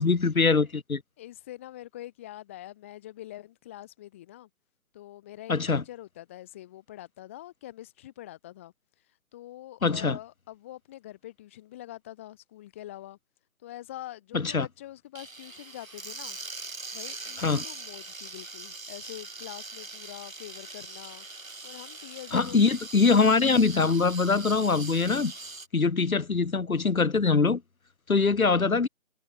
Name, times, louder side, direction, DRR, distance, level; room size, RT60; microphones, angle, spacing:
voice 1, 0.0-1.0 5.5-5.8 9.8-10.2 14.3-14.7 17.4-17.6 22.3-25.3 25.7-27.6 28.1-28.9, left 4 dB, 80° left, 1.2 m, -23 dB
voice 2, 1.2-4.5 4.9-8.7 9.3-13.2 13.6-16.4 16.9-21.3 21.6-22.6, left 14 dB, 10° left, 1.4 m, -45 dB
sound 1, 15.2-25.7, right 3 dB, 75° right, 3.7 m, -41 dB
figure-of-eight pair, 155°, 41 cm